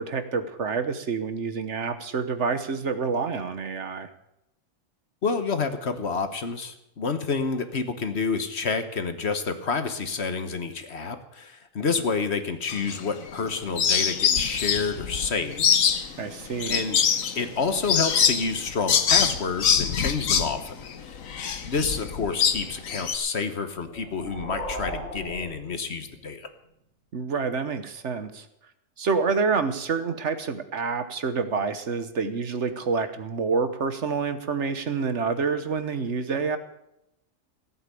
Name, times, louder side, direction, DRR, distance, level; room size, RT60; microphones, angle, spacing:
voice 1, 0.0-4.1 16.2-16.8 27.1-28.5 29.0-36.6, right 5 dB, 60° right, 10 dB, 1.4 m, -27 dB
voice 2, 5.2-16.1 16.7-17.0 17.3-21.2 21.7-26.5, left 4 dB, 55° left, 9 dB, 1.4 m, -29 dB
sound 1, 12.7-13.5 13.8-23.2, left 7 dB, 85° left, 1.4 m, -24 dB
sound 2, 23.8-26.4, equal, 80° right, 4.7 m, -37 dB
15.5 x 8.6 x 8.3 m, 0.83 s
omnidirectional pair, 1.4 m